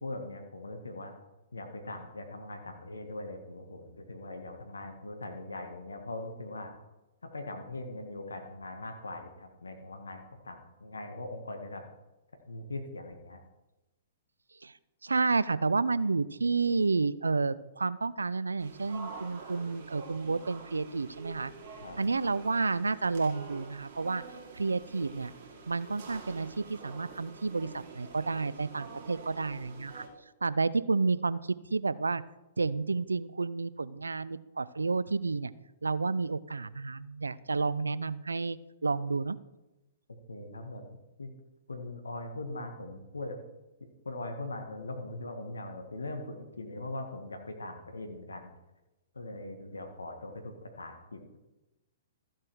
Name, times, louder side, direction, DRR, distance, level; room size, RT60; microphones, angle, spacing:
voice 1, 0.0-1.1 1.5-6.7 7.2-11.9 12.5-13.4 21.8-22.0 40.1-40.8 41.2-41.3 41.7-43.4 44.0-48.5 49.1-51.4, left 2 dB, 85° left, 5 dB, 1.6 m, -41 dB
voice 2, 15.0-21.5 22.0-24.2 24.5-25.3 25.7-30.0 30.4-31.4 31.7-32.2 32.6-35.5 35.8-38.6 38.8-39.4, right 4 dB, 90° right, 18 dB, 0.4 m, -30 dB
sound 1, 18.6-30.1, right 4 dB, 50° right, 2.7 m, -47 dB
14.0 x 7.5 x 4.7 m, 1.0 s
hypercardioid pair, 120°, 0 cm